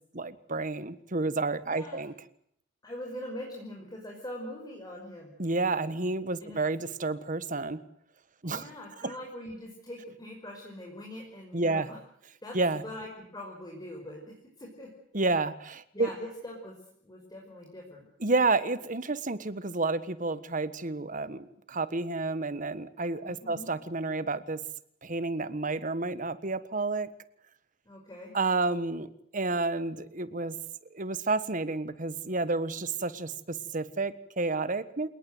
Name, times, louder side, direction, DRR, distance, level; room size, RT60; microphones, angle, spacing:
voice 1, 0.1-2.1 5.4-7.8 8.4-8.7 9.0-9.1 11.5-11.9 12.5-12.8 15.1-16.1 18.2-24.6 25.0-27.1 28.3-30.5 30.9-35.1, right 3 dB, 45° right, 14 dB, 1.5 m, -30 dB
voice 2, 1.6-2.0 2.8-5.3 6.4-6.6 8.5-12.0 12.4-14.9 15.9-16.7 17.0-18.0 23.2-23.7 27.9-28.3, left 1 dB, 20° left, 0 dB, 5.4 m, -42 dB
28.5 x 19.0 x 8.0 m, 0.70 s
head